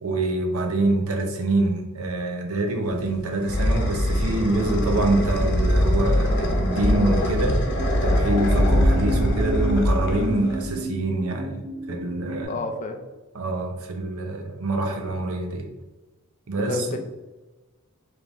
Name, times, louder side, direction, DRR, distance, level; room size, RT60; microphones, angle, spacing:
voice 1, 0.0-7.6 8.0-12.6 13.3-15.7 16.5-16.9, right 2 dB, 75° right, 3 dB, 0.7 m, -25 dB
sound 1, 2.9-10.8, equal, 55° left, 0.8 m, -22 dB
sound 2, 4.6-5.2 6.9-7.9 8.3-12.5, right 2 dB, 40° right, 1.0 m, -34 dB
voice 2, 12.5-13.0 16.7-17.0, left 3 dB, 35° left, 5 dB, 0.5 m, -29 dB
5.0 x 3.2 x 2.6 m, 1.1 s
head